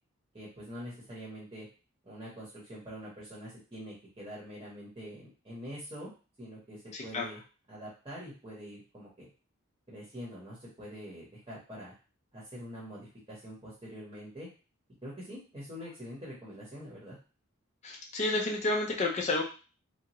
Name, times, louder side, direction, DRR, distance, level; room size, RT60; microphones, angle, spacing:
voice 1, 0.3-1.7 2.0-6.1 6.4-7.4 7.7-9.3 9.9-11.9 12.3-14.5 15.0-17.2, equal, 20° right, -6 dB, 0.9 m, -45 dB
voice 2, 6.9-7.3 17.8-19.4, left 2 dB, 30° left, 0 dB, 0.4 m, -30 dB
2.7 x 2.3 x 2.9 m, 0.35 s
head